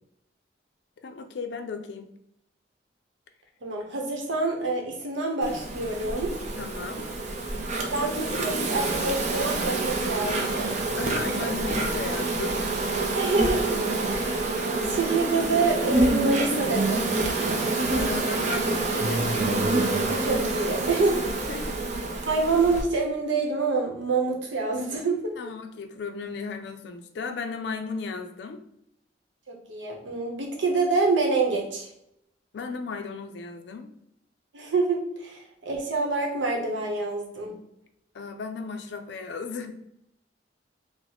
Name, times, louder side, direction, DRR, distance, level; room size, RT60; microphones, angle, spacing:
voice 1, 1.0-2.1 6.6-7.0 11.0-12.6 18.0-19.3 21.2-22.1 25.4-28.6 32.5-33.9 38.1-39.7, left 4 dB, 65° left, 7 dB, 0.4 m, -35 dB
voice 2, 3.6-6.3 7.9-10.8 13.2-13.8 14.1-14.4 14.8-17.1 20.1-21.3 22.3-25.3 29.5-31.9 34.5-37.5, right 3 dB, 85° right, 0 dB, 0.8 m, -26 dB
Insect, 5.4-22.8, right 2 dB, 40° right, 0.5 m, -27 dB
3.9 x 2.1 x 2.9 m, 0.77 s
head